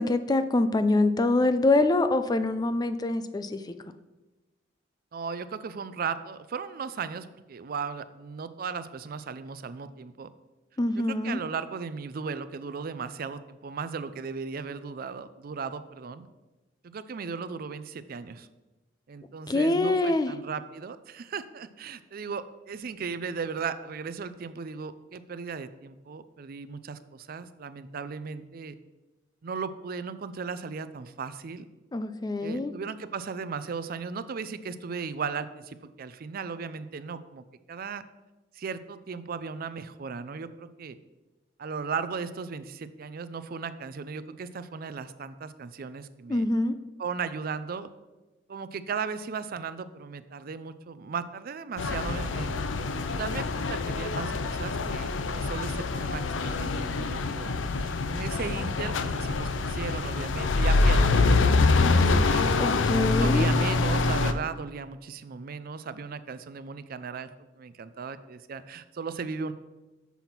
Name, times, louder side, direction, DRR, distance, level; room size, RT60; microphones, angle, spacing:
voice 1, 0.0-3.6 10.8-11.4 19.5-20.3 31.9-32.7 46.3-46.7 62.6-63.5, left 2 dB, 20° left, 10 dB, 0.4 m, -25 dB
voice 2, 5.1-10.3 11.1-16.3 16.8-18.5 19.1-28.7 29.4-31.7 32.4-38.0 38.5-41.0 41.6-46.5 47.0-47.9 48.5-52.6 53.1-62.5 63.2-67.3 67.6-69.5, right 5 dB, 50° right, 13 dB, 0.4 m, -36 dB
sound 1, 51.8-64.3, left 3 dB, 85° left, 0.5 m, -25 dB
7.1 x 5.9 x 5.8 m, 1.1 s
head